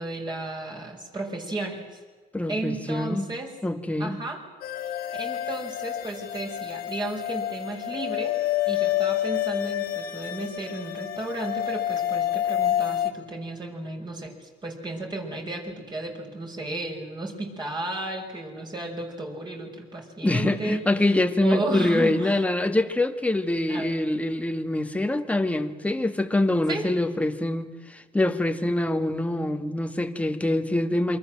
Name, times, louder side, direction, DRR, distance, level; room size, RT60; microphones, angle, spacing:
voice 1, 0.0-2.0 2.5-3.5 4.0-4.4 5.1-8.4 8.7-20.8 21.4-22.5 23.7-23.9 26.7-26.9, right 2 dB, 25° right, 1 dB, 6.3 m, -33 dB
voice 2, 2.3-3.3 3.6-4.2 20.2-31.2, left 1 dB, 10° left, 7 dB, 2.0 m, -25 dB
sound 1, 4.6-13.1, left 12 dB, 65° left, 2.6 m, -28 dB
28.0 x 24.0 x 7.7 m, 1.4 s
cardioid pair, 110°, 17 cm